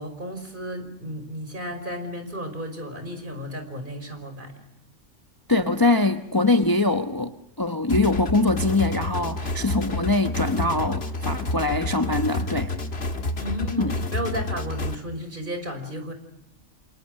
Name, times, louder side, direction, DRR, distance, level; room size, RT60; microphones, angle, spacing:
voice 1, 0.0-4.5 13.4-16.1, equal, 40° right, 6 dB, 5.6 m, -33 dB
voice 2, 5.5-12.7 13.8-13.9, left 2 dB, 20° left, 7 dB, 1.1 m, -23 dB
sound 1, 7.9-15.0, left 2 dB, 55° left, 2.0 m, -29 dB
28.5 x 28.0 x 6.5 m, 0.80 s
omnidirectional pair, 1.3 m